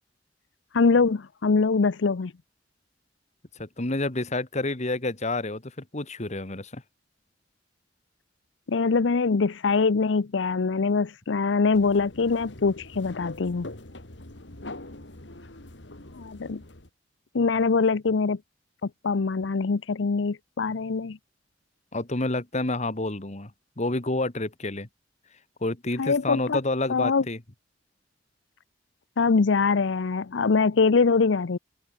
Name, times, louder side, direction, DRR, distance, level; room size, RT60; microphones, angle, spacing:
voice 1, 0.7-2.3 8.7-13.7 16.1-16.6 17.3-18.4 18.8-21.2 26.0-26.6 26.9-27.2 29.2-31.6, left 4 dB, 90° left, 0.6 m, -23 dB
voice 2, 3.6-6.8 21.9-23.5 23.8-24.9 25.6-27.4, left 2 dB, 40° left, 1.9 m, -29 dB
sound 1, 11.7-16.9, left 2 dB, 70° left, 2.7 m, -43 dB
open air
head